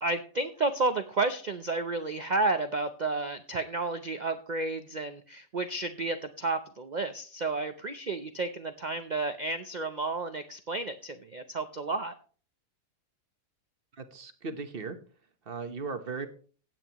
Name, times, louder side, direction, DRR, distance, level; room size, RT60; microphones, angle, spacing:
voice 1, 0.0-12.2, right 3 dB, 60° right, 8 dB, 0.4 m, -31 dB
voice 2, 13.9-15.0 15.5-16.3, right 4 dB, 40° right, 8 dB, 1.1 m, -37 dB
16.0 x 9.0 x 3.0 m, 0.40 s
omnidirectional pair, 1.7 m